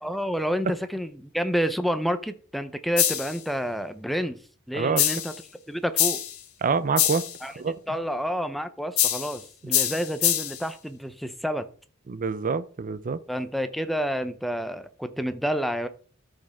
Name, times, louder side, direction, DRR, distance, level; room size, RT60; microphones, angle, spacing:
voice 1, 0.0-4.4 4.7-5.3 5.7-6.2 7.4-7.5 7.9-11.7 13.3-15.9, equal, ahead, 0.6 m, -29 dB
sound 1, 3.0-3.4 5.0-5.4 6.0-6.4 7.0-7.4 9.0-9.4 9.7-10.6, left 11 dB, 85° left, 1.3 m, -24 dB
voice 2, 6.6-7.2 7.6-8.0 12.1-13.2, right 5 dB, 40° right, 0.5 m, -26 dB
13.5 x 5.2 x 3.5 m
head